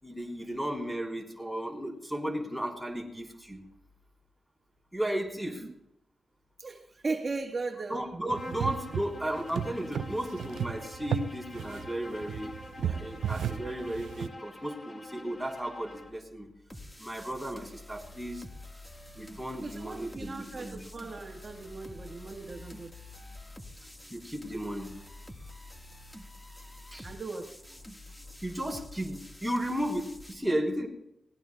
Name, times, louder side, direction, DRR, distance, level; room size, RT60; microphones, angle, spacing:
voice 1, 0.0-3.6 4.9-5.6 7.9-16.5 17.0-18.4 19.1-20.8 24.1-24.9 26.9-27.1 28.4-30.9, equal, ahead, -2 dB, 3.9 m, -34 dB
voice 2, 6.6-8.1 19.6-22.9 27.0-27.5, right 3 dB, 45° right, 2 dB, 1.6 m, -37 dB
Bowed string instrument, 8.3-16.2, left 2 dB, 35° left, 2.0 m, -46 dB
sound 1, 8.3-14.3, right 8 dB, 85° right, 0.5 m, -35 dB
sound 2, 16.7-30.3, left 1 dB, 15° left, 1.7 m, -48 dB
22.0 x 18.5 x 2.3 m, 0.82 s
cardioid pair, 60°, 0 cm